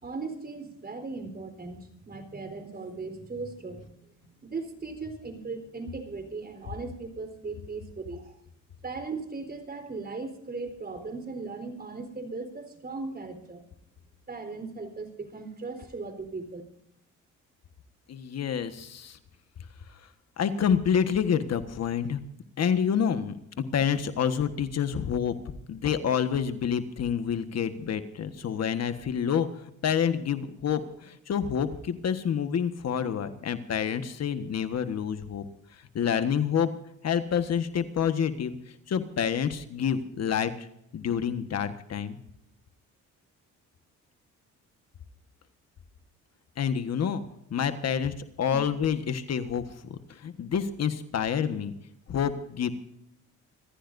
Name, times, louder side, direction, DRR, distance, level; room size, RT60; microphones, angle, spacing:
voice 1, 0.0-8.3 8.8-13.6 14.3-16.6 48.5-48.7, right 3 dB, 30° right, 7 dB, 4.2 m, -38 dB
voice 2, 18.1-19.2 20.4-22.2 22.6-25.3 25.7-29.5 29.8-35.5 35.7-36.7 37.0-38.6 38.9-40.7 40.9-42.2 46.6-47.2 47.5-51.7 52.1-52.7, left 8 dB, 60° left, 9 dB, 1.5 m, -28 dB
26.0 x 15.5 x 2.7 m, 0.75 s
cardioid pair, 90°, 30 cm